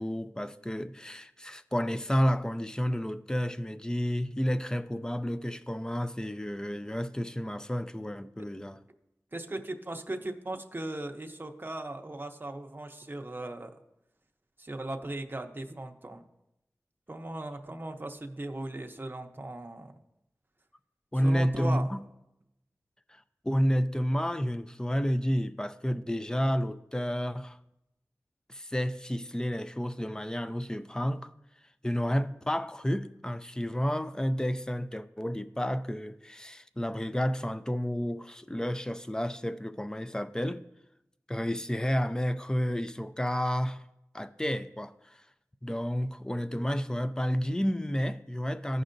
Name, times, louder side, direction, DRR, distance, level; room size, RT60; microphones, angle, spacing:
voice 1, 0.0-8.8 21.1-22.0 23.1-27.6 28.5-31.3 31.8-40.7 41.3-43.8 44.1-45.2 45.6-48.8, equal, 10° left, 0.4 m, -30 dB
voice 2, 9.3-13.7 14.6-16.2 17.1-20.0 21.2-21.9, right 2 dB, 35° right, 0.7 m, -38 dB
15.0 x 5.4 x 2.6 m
wide cardioid pair, 65°, 6 cm